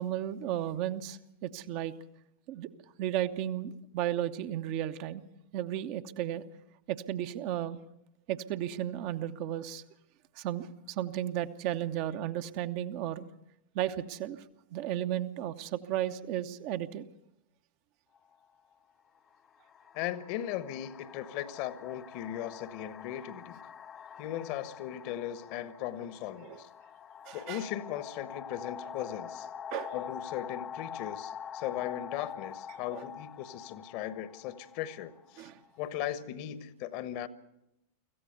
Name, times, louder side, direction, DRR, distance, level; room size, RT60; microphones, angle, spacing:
voice 1, 0.0-1.9 2.5-2.7 3.0-5.2 5.5-6.4 6.9-7.8 8.3-9.8 10.4-13.3 13.7-14.4 14.7-17.0 26.4-26.6 27.3-27.6 29.7-29.9 32.9-33.0 35.4-35.6, right 12 dB, 45° right, 9 dB, 1.0 m, -34 dB
sound 1, 18.1-18.3 19.3-35.9, left 8 dB, 25° left, 0.7 m, -45 dB
voice 2, 19.9-23.7 24.2-26.7 27.3-29.5 29.9-35.5 35.8-37.3, left 11 dB, 45° left, 14 dB, 1.2 m, -38 dB
25.0 x 15.0 x 6.7 m, 0.84 s
figure-of-eight pair, 90°, 0 cm